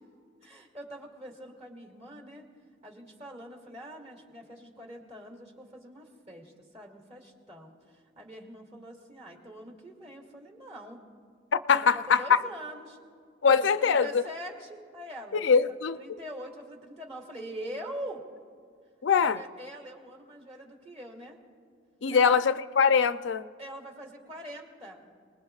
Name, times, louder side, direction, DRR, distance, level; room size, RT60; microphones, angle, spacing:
voice 1, 0.4-2.4 2.8-11.0 11.7-13.0 13.5-15.5 15.9-18.2 19.1-21.4 22.1-22.2 23.6-25.0, equal, 35° right, 2.6 m, -44 dB
voice 2, 11.7-12.4 13.4-14.2 15.4-16.0 19.0-19.4 22.0-23.4, left 6 dB, 80° left, 0.5 m, -22 dB
28.5 x 20.0 x 2.4 m
head